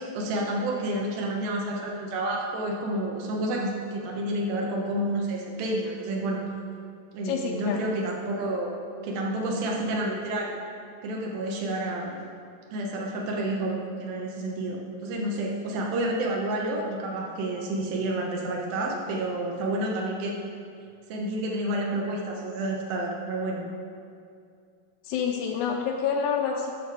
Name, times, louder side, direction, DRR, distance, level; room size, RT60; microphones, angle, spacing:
voice 1, 0.1-6.4 7.1-10.5 11.0-12.2 12.7-20.4 21.1-23.7, right 1 dB, 85° right, -1 dB, 2.8 m, -29 dB
voice 2, 7.2-7.9 25.0-26.7, left 6 dB, 85° left, 0 dB, 1.7 m, -28 dB
10.5 x 6.6 x 4.7 m, 2.4 s
omnidirectional pair, 4.1 m